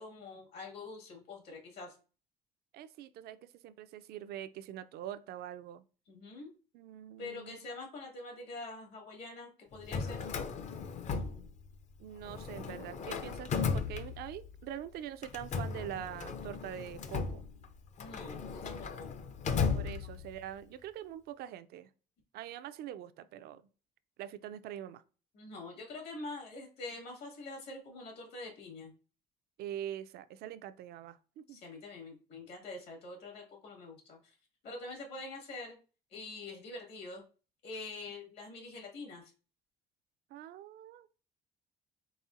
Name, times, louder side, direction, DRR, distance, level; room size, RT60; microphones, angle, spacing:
voice 1, 0.0-1.9 6.1-6.5 7.2-10.2 11.3-11.5 18.0-19.1 20.0-20.2 25.3-28.9 31.5-34.4 34.6-35.8 36.1-37.2 37.6-39.3, left 3 dB, 75° left, 1.9 m, -45 dB
voice 2, 2.7-5.8 6.7-7.6 12.0-17.4 19.7-21.9 22.3-23.7 24.2-25.0 29.6-31.6 40.3-41.2, right 11 dB, 65° right, 0.4 m, -44 dB
Drawer open or close, 9.7-11.9 12.2-14.6 15.2-20.5, left 5 dB, 45° left, 0.5 m, -36 dB
4.1 x 3.8 x 2.5 m
cardioid pair, 115°, 17 cm